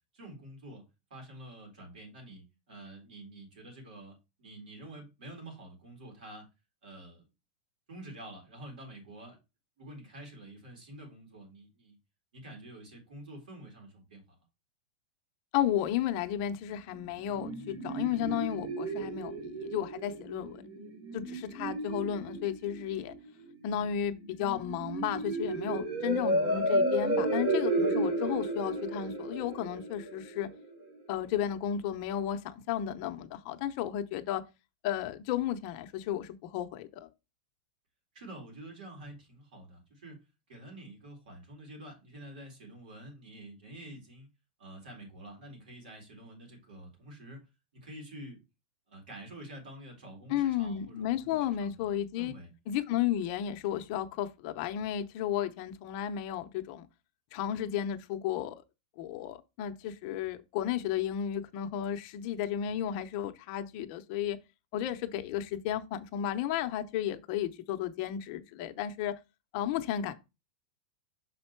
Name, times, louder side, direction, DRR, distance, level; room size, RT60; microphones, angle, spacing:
voice 1, 0.1-0.8 1.1-6.5 6.8-7.2 7.9-9.4 9.8-12.0 12.3-14.4 38.1-40.2 40.5-44.3 44.6-47.5 47.7-48.4 48.9-52.5, right 1 dB, 90° right, 4.0 m, -48 dB
voice 2, 15.5-20.6 21.1-23.1 23.6-30.5 31.1-34.4 34.8-37.1 50.3-52.3 52.7-56.9 57.3-58.6 59.0-64.4 64.7-69.2 69.5-70.1, left 10 dB, 40° left, 0.7 m, -33 dB
sound 1, 16.9-30.9, right 1 dB, 50° right, 3.0 m, -33 dB
6.3 x 4.4 x 4.5 m
supercardioid pair, 170°, 5 cm